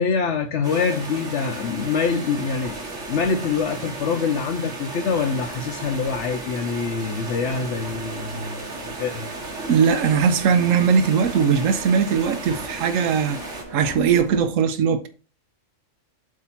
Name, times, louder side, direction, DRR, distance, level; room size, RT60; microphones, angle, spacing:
voice 1, 0.0-2.8 3.1-9.3, left 5 dB, 65° left, 1.0 m, -25 dB
sound 1, 0.6-13.6, right 2 dB, 70° right, 2.2 m, -35 dB
sound 2, 1.8-14.5, right 1 dB, 20° right, 1.2 m, -43 dB
voice 2, 9.7-13.4 13.7-15.1, right 6 dB, 90° right, 1.1 m, -19 dB
8.3 x 2.8 x 5.7 m
omnidirectional pair, 1.3 m